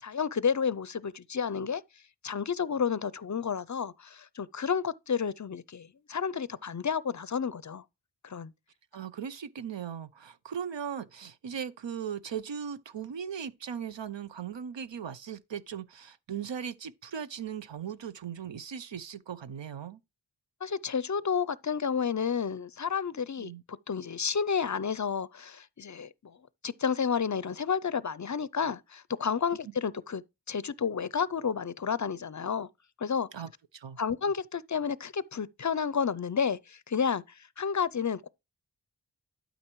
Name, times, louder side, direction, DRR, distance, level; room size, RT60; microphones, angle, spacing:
voice 1, 0.0-1.8 2.2-7.8 8.2-8.5 20.6-26.4 26.6-30.2 30.5-32.7 33.0-33.3 34.0-38.3, left 6 dB, 45° left, 0.4 m, -31 dB
voice 2, 8.9-20.0 23.4-23.6 33.3-34.0, right 8 dB, 80° right, 0.7 m, -38 dB
12.0 x 5.2 x 3.0 m
wide cardioid pair, 45°, 43 cm